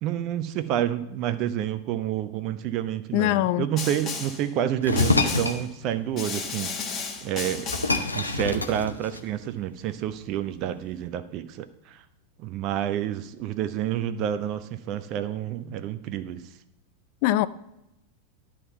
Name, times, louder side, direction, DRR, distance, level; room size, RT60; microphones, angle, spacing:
voice 1, 0.0-6.7 7.2-7.7 8.1-12.0 12.4-16.4, right 11 dB, 40° right, 0.5 m, -29 dB
voice 2, 3.1-3.7 17.2-17.5, left 15 dB, 45° left, 0.3 m, -22 dB
Snare drum, 3.8-4.5 5.0-5.7 6.2-8.1, left 5 dB, 30° left, 1.4 m, -34 dB
sound 1, 4.8-5.6 7.0-7.1 7.4-9.5, left 3 dB, 80° left, 0.7 m, -26 dB
11.0 x 3.7 x 6.8 m
figure-of-eight pair, 90°, 0 cm